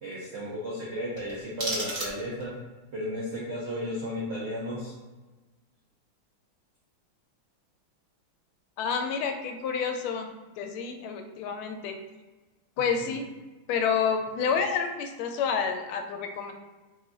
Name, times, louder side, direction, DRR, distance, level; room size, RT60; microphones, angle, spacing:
voice 1, 0.0-2.5 2.9-4.9 13.0-13.2, equal, 70° right, -7 dB, 0.6 m, -34 dB
sound 1, 1.1-2.6, right 1 dB, 30° right, 0.9 m, -35 dB
voice 2, 8.8-10.3 10.6-12.0 12.8-13.2 13.7-16.5, left 6 dB, 85° left, 5 dB, 1.4 m, -29 dB
3.4 x 2.3 x 3.8 m, 1.2 s
omnidirectional pair, 2.3 m